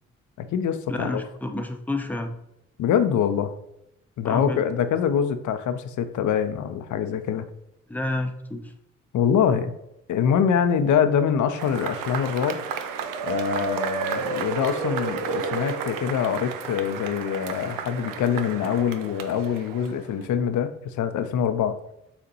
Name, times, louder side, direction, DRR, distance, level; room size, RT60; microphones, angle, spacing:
voice 1, 0.4-1.2 2.8-3.5 4.2-7.4 9.1-9.7 10.1-12.6 13.2-21.8, left 8 dB, 60° left, 10 dB, 0.6 m, -24 dB
voice 2, 0.9-2.3 4.2-4.6 7.9-8.6, left 2 dB, 5° left, 4 dB, 0.8 m, -29 dB
Cheering / Applause / Crowd, 11.5-20.2, right 6 dB, 70° right, 0.6 m, -32 dB
6.7 x 2.5 x 2.8 m, 0.82 s
hypercardioid pair, 45°, 34 cm